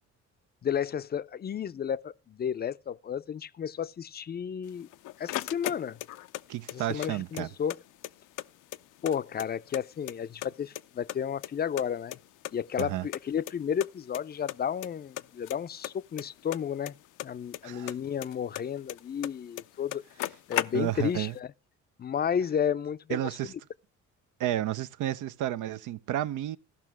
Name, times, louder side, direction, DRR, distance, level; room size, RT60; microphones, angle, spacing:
voice 1, 0.6-4.9 5.2-6.0 6.7-7.8 9.0-12.2 12.5-16.9 17.2-20.0 20.5-21.5 22.0-23.2, left 8 dB, 35° left, 0.5 m, -32 dB
sound 1, 4.7-6.4 6.7-7.8 8.0-8.1 8.4-9.8 10.1-10.8 11.1-12.5 12.8-12.9 13.1-13.2 13.5-13.6 13.8-14.2 14.5-14.9 15.2-17.6 17.9-19.3 19.6-19.7 19.9-21.1, left 15 dB, 85° left, 0.5 m, -36 dB
voice 2, 6.5-7.5 12.8-13.1 17.6-17.9 20.7-21.4 23.1-23.5 24.4-26.6, right 13 dB, 80° right, 0.6 m, -31 dB
15.0 x 5.7 x 5.9 m
cardioid pair, 90°, 30 cm